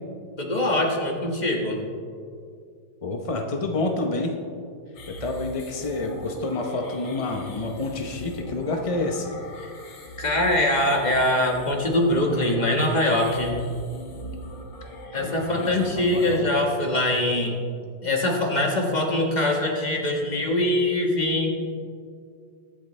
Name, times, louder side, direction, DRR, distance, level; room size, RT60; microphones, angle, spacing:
voice 1, 0.4-1.8 9.6-9.7 10.2-13.5 15.1-17.5 18.0-21.5, left 1 dB, 25° left, 0 dB, 1.5 m, -23 dB
voice 2, 3.0-4.3 5.1-9.3 15.1-16.5, left 2 dB, 45° left, 3 dB, 0.4 m, -29 dB
sound 1, 5.0-16.4, equal, 80° left, 2.2 m, -40 dB
22.0 x 8.0 x 3.3 m, 2.3 s
omnidirectional pair, 1.9 m